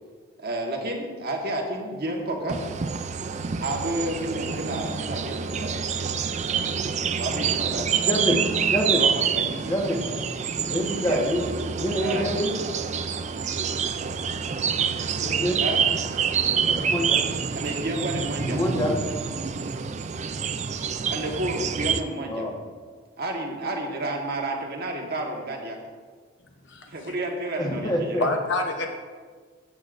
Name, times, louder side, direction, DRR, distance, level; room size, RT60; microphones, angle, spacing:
voice 1, 0.4-2.6 3.6-6.2 7.2-8.2 8.8-10.2 11.0-11.3 12.0-12.3 15.6-15.8 17.5-18.6 21.1-22.5 23.2-25.8 26.9-28.3, right 1 dB, 50° right, 1 dB, 1.5 m, -31 dB
sound 1, 2.5-22.0, right 6 dB, 35° right, 0.4 m, -27 dB
voice 2, 8.0-8.4 8.7-9.0 9.6-10.0 10.7-11.4 11.8-12.5 15.2-15.6 16.7-17.2 18.5-18.9 22.3-22.5 27.6-28.3, equal, 20° left, -1 dB, 1.4 m, -26 dB
voice 3, 26.7-27.2 28.2-28.9, left 2 dB, 60° left, 2 dB, 0.9 m, -27 dB
14.5 x 8.4 x 2.6 m, 1.5 s
head